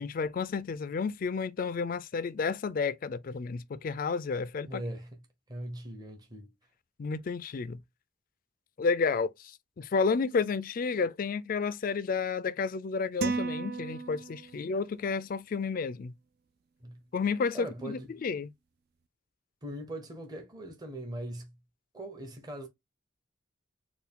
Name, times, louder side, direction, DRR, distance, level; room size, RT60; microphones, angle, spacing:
voice 1, 0.0-4.8 7.0-7.8 8.8-16.1 17.1-18.5, left 5 dB, 45° left, 0.3 m, -31 dB
voice 2, 4.7-5.2 5.5-6.5 16.8-17.0 17.5-18.1 19.6-21.5 21.9-22.7, right 1 dB, 20° right, 0.7 m, -40 dB
sound 1, 13.2-14.7, right 4 dB, 55° right, 0.3 m, -34 dB
4.5 x 2.3 x 3.5 m
head